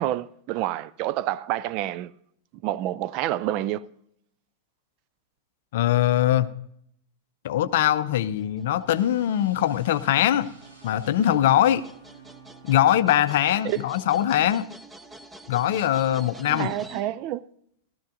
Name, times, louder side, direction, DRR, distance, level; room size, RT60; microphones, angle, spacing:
voice 1, 0.0-2.1 2.6-3.9 13.6-13.8 16.5-17.4, right 14 dB, 40° right, 0.4 m, -28 dB
voice 2, 5.7-6.5 7.4-10.5 10.8-11.8 12.6-14.6 15.5-16.7, left 12 dB, 55° left, 0.5 m, -22 dB
sound 1, 8.0-17.0, right 1 dB, 5° right, 0.7 m, -48 dB
sound 2, 8.8-12.8, right 4 dB, 85° right, 5.7 m, -50 dB
15.5 x 13.0 x 2.6 m
figure-of-eight pair, 90°, 0 cm